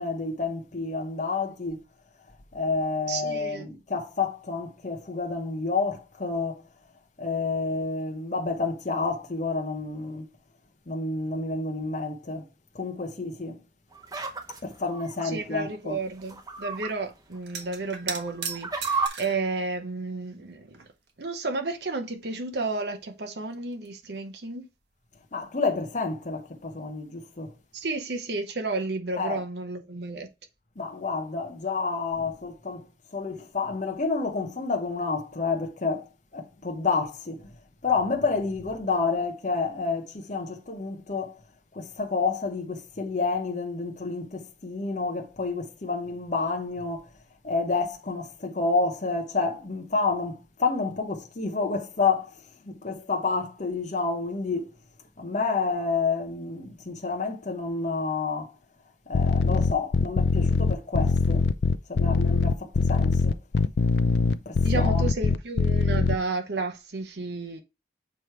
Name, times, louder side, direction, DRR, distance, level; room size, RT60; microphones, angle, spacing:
voice 1, 0.0-1.8 2.5-6.6 7.2-10.3 10.9-12.5 12.7-13.6 14.6-16.0 25.3-27.5 29.2-29.4 30.8-32.9 33.1-37.5 37.8-41.4 41.7-47.1 47.4-54.7 55.2-58.5 59.1-61.5 61.9-63.4 64.5-65.0, left 4 dB, 45° left, 0.9 m, -29 dB
voice 2, 3.1-3.7 15.3-20.9 21.2-24.7 27.7-30.3 64.6-67.6, right 3 dB, 65° right, 0.9 m, -32 dB
sound 1, 13.9-15.3 16.2-16.9 17.3-17.4 18.1-19.1, right 4 dB, 20° right, 0.9 m, -32 dB
sound 2, 17.4-19.5 20.3-21.1 21.4-21.5 22.8-22.9 23.2-24.3 27.8-28.1 28.4-28.6, right 6 dB, 85° right, 1.4 m, -38 dB
sound 3, 59.1-66.1, left 4 dB, 70° left, 0.5 m, -22 dB
7.0 x 3.2 x 4.5 m
head